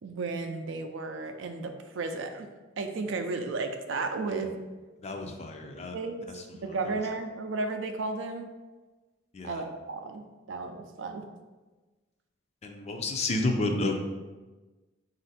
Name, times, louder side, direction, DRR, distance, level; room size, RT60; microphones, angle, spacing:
voice 1, 0.0-2.5 2.8-4.5 5.9-6.3 6.6-8.5 9.4-11.3, right 3 dB, 70° right, 6 dB, 0.4 m, -34 dB
voice 2, 5.0-5.9 9.3-9.6 12.6-14.0, left 2 dB, 35° left, 3 dB, 0.4 m, -30 dB
4.2 x 2.5 x 4.0 m, 1.2 s
head